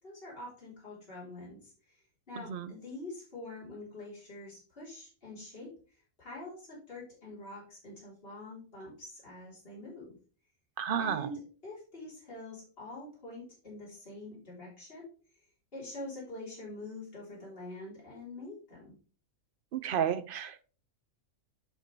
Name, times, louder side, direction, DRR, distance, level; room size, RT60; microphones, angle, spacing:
voice 1, 0.0-10.2 11.0-15.4 15.7-19.0, left 2 dB, 40° left, -6 dB, 3.8 m, -45 dB
voice 2, 10.8-11.2 19.8-20.6, right 8 dB, 60° right, 12 dB, 0.5 m, -31 dB
8.0 x 6.5 x 3.3 m, 0.38 s
omnidirectional pair, 1.5 m